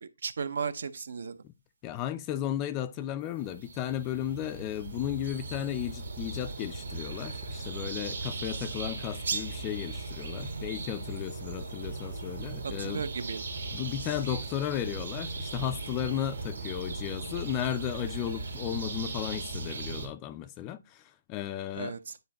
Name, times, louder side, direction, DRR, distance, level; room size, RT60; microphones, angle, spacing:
voice 1, 0.0-1.4 12.8-13.4 21.7-22.2, right 5 dB, 60° right, 0.6 m, -35 dB
voice 2, 1.8-13.1 13.7-22.0, left 11 dB, 20° left, 0.3 m, -34 dB
sound 1, 3.4-20.1, right 3 dB, 75° right, 2.1 m, -37 dB
9.5 x 4.0 x 2.9 m
hypercardioid pair, 165°, 0 cm